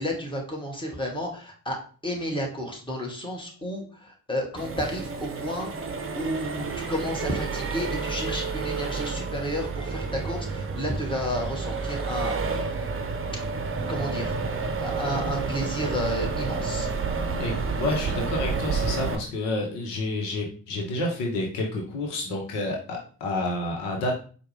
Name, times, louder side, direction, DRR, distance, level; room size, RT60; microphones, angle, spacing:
voice 1, 0.0-12.9 13.9-14.4 14.8-16.9, equal, 10° left, 0 dB, 1.5 m, -32 dB
Accelerating revving vroom, 4.6-19.2, right 4 dB, 30° right, 0.7 m, -30 dB
voice 2, 17.4-24.2, left 2 dB, 75° left, 1 dB, 0.9 m, -29 dB
4.5 x 2.3 x 3.2 m, 0.40 s
hypercardioid pair, 40°, 43 cm